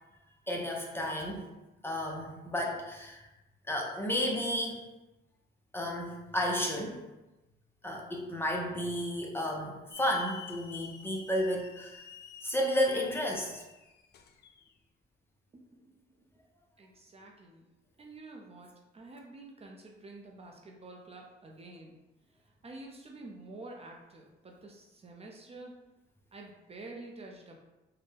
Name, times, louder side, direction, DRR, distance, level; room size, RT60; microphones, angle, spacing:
voice 1, 0.5-1.4 1.8-3.2 3.7-4.8 5.7-7.0 7.8-12.0 12.4-13.6, equal, 10° left, -1 dB, 0.6 m, -32 dB
Hiss / Alarm, 9.9-14.7, left 7 dB, 55° left, 0.4 m, -50 dB
voice 2, 15.5-16.3 16.8-17.7 18.0-21.9 22.6-25.7 26.3-27.6, right 2 dB, 30° right, 0 dB, 0.6 m, -49 dB
4.1 x 2.1 x 3.3 m, 1.0 s
cardioid pair, 90°, 20 cm